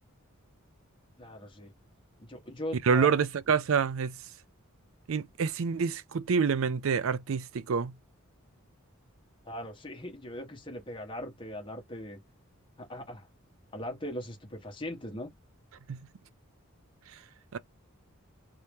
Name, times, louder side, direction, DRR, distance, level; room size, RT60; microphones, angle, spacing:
voice 1, 1.2-1.7 2.2-3.1 9.4-12.2 12.8-13.3 13.7-15.3, left 1 dB, 20° left, 1.1 m, -40 dB
voice 2, 2.8-4.2 5.1-7.9 15.9-16.0 17.5-17.6, right 6 dB, 65° right, 0.4 m, -27 dB
3.1 x 2.8 x 3.4 m
head